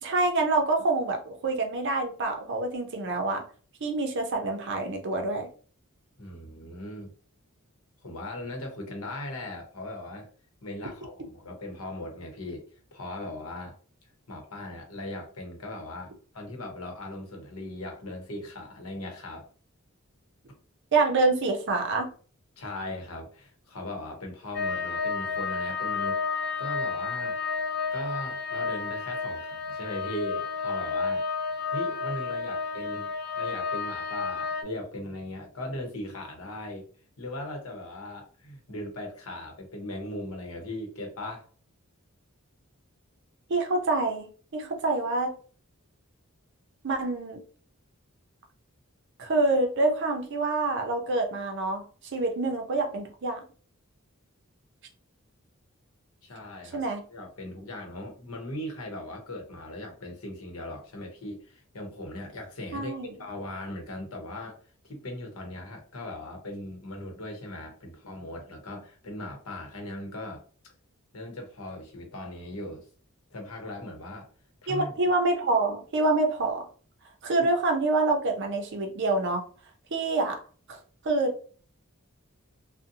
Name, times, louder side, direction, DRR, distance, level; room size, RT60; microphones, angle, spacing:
voice 1, 0.0-3.5 3.8-5.5 20.9-22.1 43.5-45.4 46.8-47.4 49.2-51.8 52.1-53.4 56.7-57.0 62.7-63.1 74.7-76.7 77.2-79.4 79.9-80.4 80.7-80.8 81.0-81.4, right 2 dB, 55° right, 4 dB, 0.5 m, -26 dB
voice 2, 6.2-7.1 8.0-10.3 10.6-12.6 12.9-13.8 14.3-19.5 22.6-27.4 27.9-31.2 31.6-36.9 37.2-41.5 56.2-64.6 64.8-70.4 71.1-72.9 73.3-74.3 74.6-74.9, left 1 dB, 75° left, 2 dB, 0.9 m, -39 dB
sound 1, 24.5-34.6, left 5 dB, 50° left, 0.3 m, -31 dB
2.6 x 2.1 x 2.6 m, 0.41 s
head